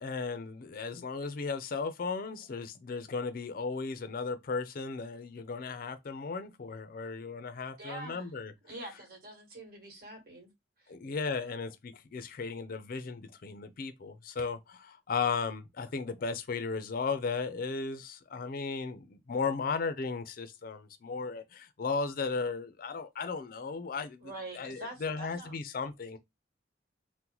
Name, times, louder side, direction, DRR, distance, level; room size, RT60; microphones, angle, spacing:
voice 1, 0.0-8.5 10.9-26.2, left 4 dB, 50° left, 0.4 m, -35 dB
voice 2, 7.8-8.3 8.6-10.5 24.2-25.5, right 1 dB, 55° right, 1.4 m, -45 dB
3.8 x 2.1 x 2.9 m
head